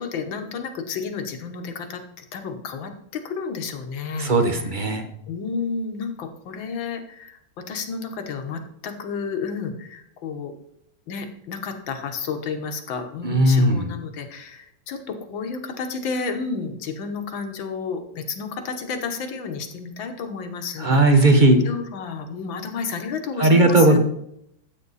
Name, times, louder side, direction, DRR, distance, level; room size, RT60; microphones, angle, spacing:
voice 1, 0.0-4.7 5.3-10.5 11.1-24.0, left 5 dB, 70° left, 6 dB, 2.0 m, -31 dB
voice 2, 4.2-5.1 13.2-13.9 20.8-21.6 23.4-24.0, right 2 dB, 30° right, 6 dB, 1.0 m, -16 dB
13.5 x 8.4 x 4.2 m, 0.76 s
omnidirectional pair, 2.3 m